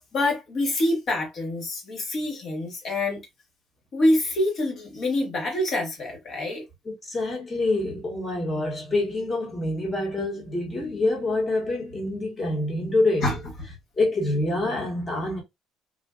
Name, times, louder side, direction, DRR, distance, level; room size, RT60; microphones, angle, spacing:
voice 1, 0.0-3.2 3.9-6.6 13.2-13.4, left 1 dB, 35° left, 1.3 m, -26 dB
voice 2, 6.8-13.3 14.0-15.4, left 2 dB, 15° left, 1.3 m, -26 dB
3.6 x 2.5 x 2.2 m
cardioid pair, 175°, 0 cm